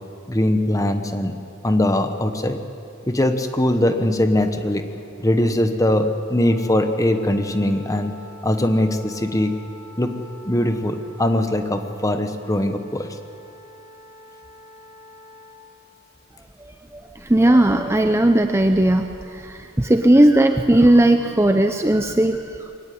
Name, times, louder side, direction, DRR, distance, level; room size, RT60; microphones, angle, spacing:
voice 1, 0.3-1.3 1.6-2.6 3.1-4.8 5.2-8.1 8.4-9.5 10.0-10.1 10.4-13.1, left 1 dB, 15° left, 7 dB, 1.2 m, -21 dB
Wind instrument woodwind instrument, 6.4-15.6, equal, 65° right, 7.4 m, -45 dB
voice 2, 16.6-22.8, right 1 dB, 10° right, 6 dB, 0.6 m, -17 dB
22.5 x 17.0 x 9.5 m, 2.6 s
head